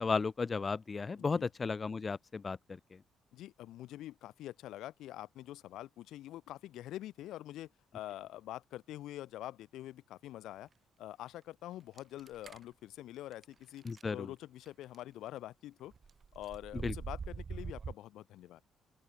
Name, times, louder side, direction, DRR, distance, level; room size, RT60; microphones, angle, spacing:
voice 1, 0.0-2.6 13.8-14.3 16.8-16.9, left 4 dB, 35° left, 0.8 m, -34 dB
voice 2, 1.2-1.5 3.3-10.7 11.0-13.8 14.1-15.9 16.3-18.6, left 14 dB, 85° left, 2.1 m, -46 dB
sound 1, 12.0-12.6 13.3-13.4 13.8-14.0 14.7-15.0 15.9-17.9, right 5 dB, 40° right, 2.8 m, -43 dB
open air
cardioid pair, 90°, 0 cm